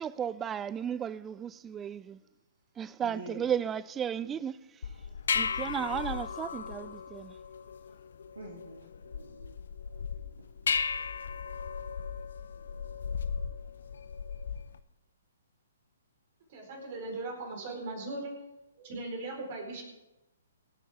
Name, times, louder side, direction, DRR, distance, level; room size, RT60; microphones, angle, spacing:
voice 1, 0.0-2.2 2.8-4.6 5.3-7.4, right 8 dB, 15° right, 0.4 m, -34 dB
voice 2, 3.0-3.6 4.2-4.3 5.6-5.9 8.3-9.5 10.4-10.5, right 2 dB, 70° right, 2.9 m, -47 dB
sound 1, 4.8-14.8, left 6 dB, 60° left, 0.7 m, -36 dB
voice 3, 16.5-18.3 18.8-19.8, right 2 dB, 40° right, 4.5 m, -38 dB
27.0 x 9.2 x 3.6 m
figure-of-eight pair, 125°, 0 cm